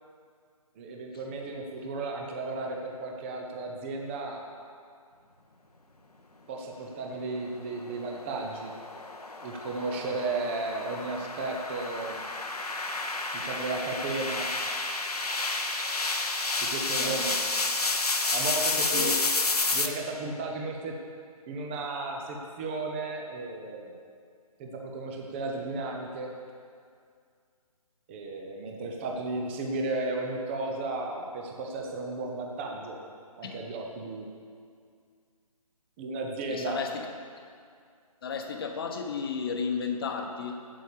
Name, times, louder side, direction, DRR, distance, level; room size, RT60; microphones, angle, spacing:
voice 1, 0.8-4.4 6.5-8.7 9.4-12.2 13.3-14.5 16.6-17.4 18.3-19.1 19.7-20.9 21.5-23.9 24.6-26.3 28.1-33.0 33.4-34.3 36.0-36.8, right 3 dB, 20° right, 1 dB, 0.8 m, -34 dB
sound 1, 7.8-19.9, left 3 dB, 90° left, 1.1 m, -30 dB
voice 2, 36.5-37.1 38.2-40.7, left 5 dB, 40° left, 4 dB, 1.1 m, -33 dB
8.8 x 8.3 x 6.8 m, 2.2 s
figure-of-eight pair, 150°, 19 cm